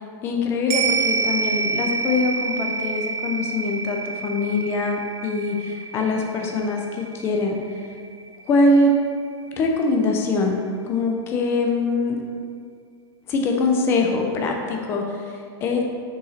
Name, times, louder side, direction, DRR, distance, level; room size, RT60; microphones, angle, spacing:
voice 1, 0.2-7.8 8.4-8.9 9.5-10.6 10.8-12.2 13.3-15.9, left 3 dB, 20° left, 2 dB, 0.6 m, -23 dB
sound 1, 0.7-9.3 9.6-9.7, right 5 dB, 30° right, 0.7 m, -28 dB
6.0 x 4.9 x 4.1 m, 2.3 s
supercardioid pair, 170°, 14 cm